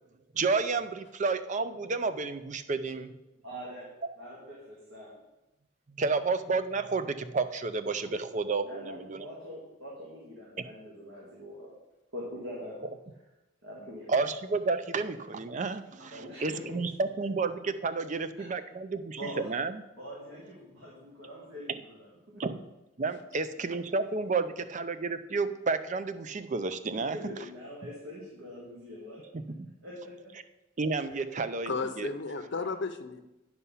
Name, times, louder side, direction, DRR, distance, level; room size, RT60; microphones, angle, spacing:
voice 1, 0.3-3.1 5.9-9.3 10.6-10.7 14.1-19.0 19.4-19.8 22.4-22.6 23.0-27.2 30.8-32.1, right 4 dB, 35° right, 11 dB, 0.5 m, -31 dB
voice 2, 3.4-3.9 4.2-5.2 8.0-8.1 8.6-11.7 12.1-12.9 13.6-14.1 16.1-16.8 18.4-18.5 19.2-19.5 20.0-22.4 26.9-29.2 29.8-30.3 31.1-31.2, equal, 75° right, -5 dB, 2.1 m, -43 dB
voice 3, 31.7-33.2, left 4 dB, 60° left, 8 dB, 0.7 m, -33 dB
9.6 x 5.6 x 5.6 m, 1.0 s
head